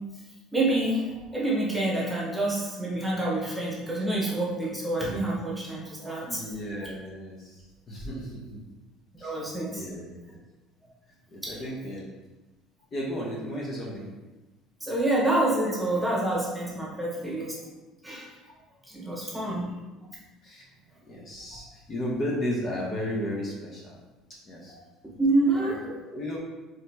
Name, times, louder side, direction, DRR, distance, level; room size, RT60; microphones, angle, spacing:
voice 1, 0.5-6.4 9.2-9.8 11.4-11.5 14.8-17.5 18.0-18.3 18.9-19.7 24.7-24.8 25.2-25.8, right 2 dB, 5° right, -5 dB, 1.2 m, -27 dB
voice 2, 6.3-8.6 9.2-9.4 9.7-10.4 11.3-12.1 12.9-14.1 19.5-19.7 20.4-20.6 21.1-24.0 24.3-24.7 25.4-26.4, equal, 35° left, -4 dB, 0.9 m, -34 dB
4.0 x 3.2 x 2.8 m, 1.1 s
cardioid pair, 115°, 0 cm